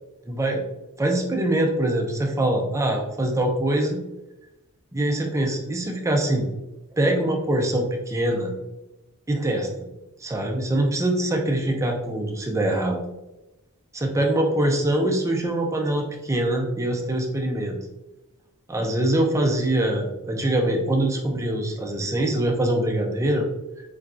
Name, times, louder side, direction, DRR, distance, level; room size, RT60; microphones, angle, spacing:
voice 1, 0.3-0.6 1.0-4.0 4.9-6.5 6.9-8.5 9.3-9.7 10.2-13.0 13.9-17.8 18.7-23.5, right 1 dB, 15° right, 1 dB, 0.4 m, -23 dB
3.9 x 2.3 x 2.4 m, 0.99 s
head